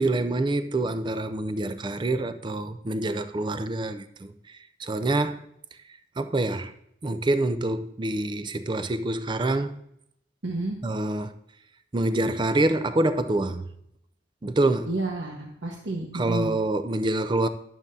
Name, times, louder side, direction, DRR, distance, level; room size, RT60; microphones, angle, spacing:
voice 1, 0.0-4.3 4.8-5.4 6.2-6.7 7.0-9.8 10.8-11.3 11.9-13.7 14.4-14.9 16.1-17.5, right 2 dB, 25° right, 0.4 m, -26 dB
voice 2, 10.4-10.8 14.9-16.5, right 2 dB, 90° right, 1.3 m, -31 dB
11.0 x 7.2 x 2.7 m
head